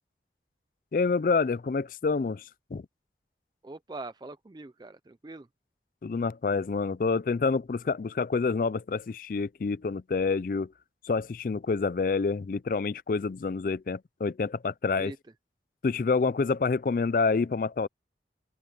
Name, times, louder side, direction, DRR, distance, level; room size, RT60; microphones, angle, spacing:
voice 1, 0.9-2.4 2.7-2.8 6.0-10.7 11.0-15.1 15.8-17.9, left 4 dB, 50° left, 0.4 m, -27 dB
voice 2, 3.6-5.5 15.0-15.2, right 2 dB, 25° right, 0.4 m, -42 dB
head